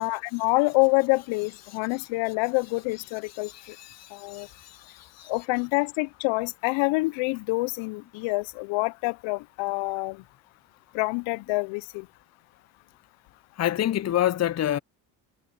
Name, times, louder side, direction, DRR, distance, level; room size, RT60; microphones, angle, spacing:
voice 1, 0.0-3.5 4.1-4.5 5.3-10.2 10.9-12.1, left 26 dB, 80° left, 0.7 m, -26 dB
voice 2, 3.5-5.3 13.6-14.8, left 12 dB, 35° left, 0.6 m, -28 dB
hypercardioid pair, 60°, 46 cm